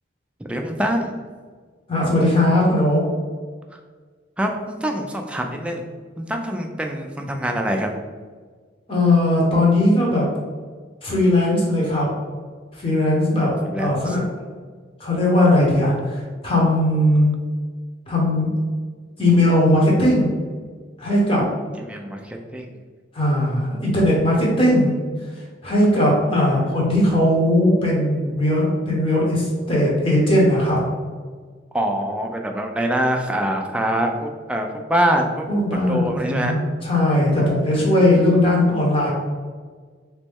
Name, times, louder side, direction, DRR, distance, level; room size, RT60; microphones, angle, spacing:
voice 1, 0.5-1.1 4.4-5.8 6.2-8.0 13.4-14.2 21.8-22.7 26.4-26.8 31.7-35.5 35.7-36.5 37.7-37.9, right 1 dB, 5° right, 2 dB, 0.3 m, -25 dB
voice 2, 1.9-3.0 8.9-10.3 11.0-12.1 12.8-13.5 13.8-14.2 15.0-17.3 18.1-18.5 19.2-20.3 21.0-21.4 23.1-25.0 25.6-30.8 35.5-39.1, left 1 dB, 30° left, -4 dB, 1.2 m, -18 dB
4.1 x 3.0 x 3.5 m, 1.5 s
head